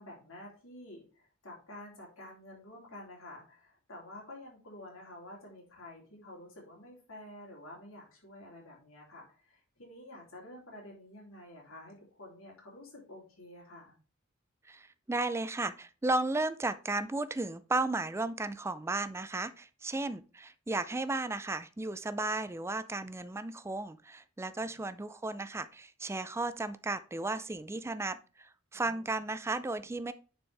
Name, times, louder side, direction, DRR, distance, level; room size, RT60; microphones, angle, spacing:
voice 1, 0.0-13.9 24.5-24.8 28.7-29.2, left 1 dB, 90° left, -2 dB, 3.1 m, -50 dB
voice 2, 14.7-30.1, right 2 dB, 15° right, 14 dB, 0.4 m, -34 dB
9.8 x 4.4 x 3.3 m, 0.36 s
head